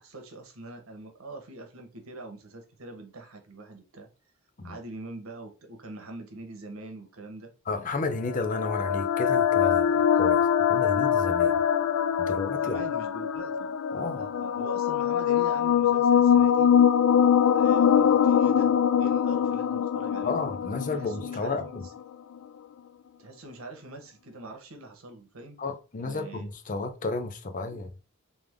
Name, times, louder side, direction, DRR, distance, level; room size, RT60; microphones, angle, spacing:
voice 1, 0.0-4.1 4.6-7.5 12.6-13.7 14.1-16.7 17.4-20.3 20.9-21.8 23.2-25.6 26.0-26.5 27.7-27.8, right 2 dB, 80° right, 1.1 m, -43 dB
voice 2, 7.7-11.6 12.2-12.8 13.9-14.3 20.2-21.8 25.6-27.9, left 3 dB, 40° left, 0.5 m, -32 dB
sound 1, 8.2-21.9, left 8 dB, 85° left, 0.3 m, -23 dB
3.5 x 3.4 x 3.5 m
head